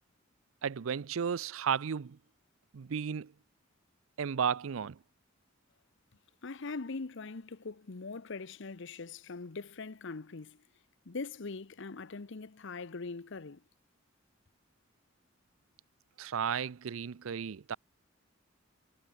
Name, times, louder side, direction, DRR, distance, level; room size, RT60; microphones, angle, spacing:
voice 1, 0.6-2.2 2.7-3.3 4.2-5.0 16.2-17.8, right 7 dB, 80° right, 0.5 m, -33 dB
voice 2, 6.4-10.6 11.1-13.6, left 4 dB, 60° left, 0.8 m, -42 dB
head